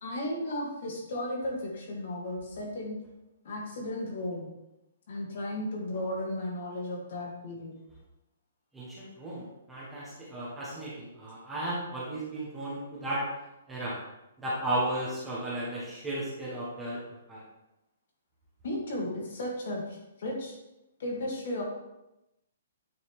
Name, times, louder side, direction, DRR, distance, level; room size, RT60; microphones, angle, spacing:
voice 1, 0.0-3.0 3.5-4.5 5.1-7.8 18.6-20.6 21.0-21.6, left 1 dB, 45° left, -1 dB, 1.7 m, -35 dB
voice 2, 8.7-13.2 13.7-14.0 14.4-17.0 17.3-17.4, right 1 dB, 5° right, -8 dB, 1.1 m, -34 dB
9.2 x 3.9 x 3.6 m, 0.92 s
hypercardioid pair, 175°, 0 cm